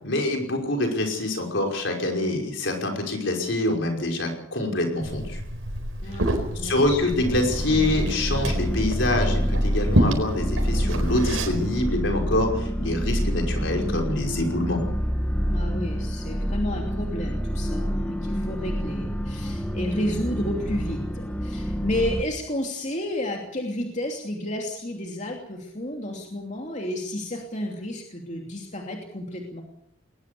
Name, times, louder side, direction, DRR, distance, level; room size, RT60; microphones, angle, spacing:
voice 1, 0.0-5.4 6.6-14.8, left 1 dB, 65° left, 2 dB, 5.5 m, -25 dB
Liquid, 5.0-11.8, right 1 dB, 80° right, 4.5 m, -29 dB
voice 2, 6.0-7.0 15.5-29.6, left 1 dB, 35° left, 1 dB, 2.8 m, -31 dB
sound 1, 7.2-22.2, equal, 5° left, 1.8 m, -27 dB
21.0 x 20.0 x 6.9 m, 0.73 s
head